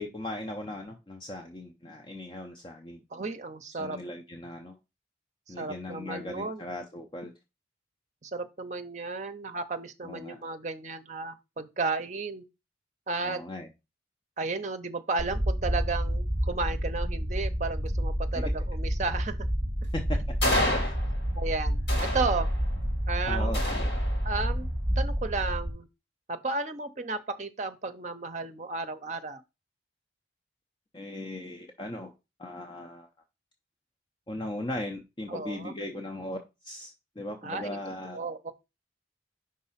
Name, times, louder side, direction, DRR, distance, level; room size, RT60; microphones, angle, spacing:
voice 1, 0.0-3.0 3.8-4.8 5.5-7.3 10.0-10.4 13.2-13.7 18.3-18.5 19.9-20.2 20.7-21.0 23.3-23.9 30.9-32.1 32.4-33.1 34.3-36.4 36.6-38.2, left 1 dB, 25° left, 0.6 m, -38 dB
voice 2, 3.1-4.0 5.5-6.6 8.2-12.4 13.1-13.4 14.4-19.4 21.3-21.8 22.1-22.5 23.1-23.5 24.2-24.7 25.0-25.9 26.3-29.4 35.3-35.7 37.4-37.8 38.1-38.5, right 3 dB, 40° right, 0.6 m, -33 dB
sound 1, 15.2-25.7, equal, ahead, 2.0 m, -29 dB
sound 2, 20.4-21.4 21.9-22.9 23.5-24.5, left 1 dB, 70° left, 2.6 m, -30 dB
5.3 x 3.7 x 5.6 m
head